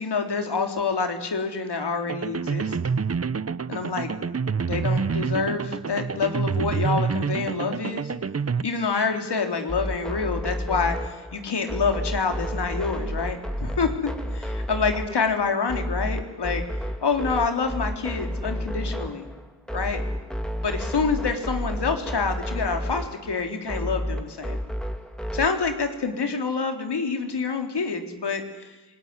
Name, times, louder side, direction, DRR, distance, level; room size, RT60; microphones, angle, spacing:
voice 1, 0.0-2.8 3.7-4.1 4.6-8.1 8.6-16.6 17.0-19.3 19.7-20.0 20.6-24.6 25.3-28.7, left 5 dB, 70° left, 5 dB, 3.7 m, -27 dB
sound 1, 2.1-8.6, right 5 dB, 35° right, 0.9 m, -27 dB
sound 2, 9.7-25.6, equal, ahead, 3.2 m, -31 dB
26.5 x 19.5 x 9.8 m, 1.2 s
cardioid pair, 50°, 42 cm